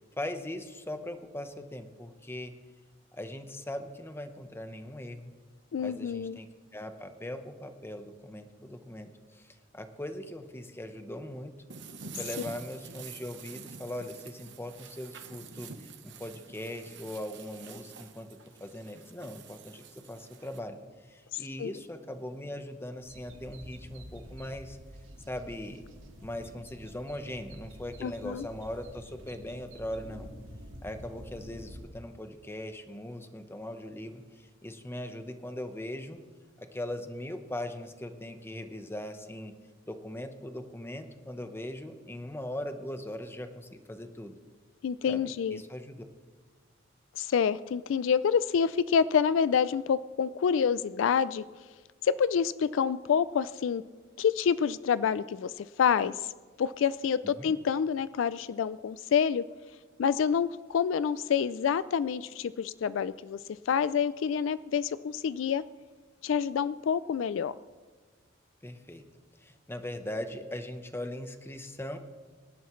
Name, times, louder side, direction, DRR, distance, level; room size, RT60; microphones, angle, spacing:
voice 1, 0.2-2.5 3.1-5.3 5.8-11.5 12.2-18.3 18.6-20.8 21.1-24.8 25.3-25.8 26.2-30.3 30.8-36.2 36.6-39.5 39.8-44.3 45.1-46.0 57.4-57.6 68.6-69.0 69.4-72.0, left 1 dB, 10° left, 7 dB, 0.9 m, -40 dB
voice 2, 5.7-6.4 21.3-21.7 28.0-28.5 44.8-45.6 47.2-51.4 52.0-53.8 54.2-56.3 56.6-59.4 60.0-63.4 63.7-65.6 66.2-67.6, left 7 dB, 70° left, 16 dB, 0.3 m, -27 dB
sound 1, 11.7-20.6, right 6 dB, 65° right, 1.0 m, -47 dB
sound 2, 23.0-31.9, equal, 85° right, 2.0 m, -48 dB
24.5 x 11.0 x 3.1 m, 1.4 s
head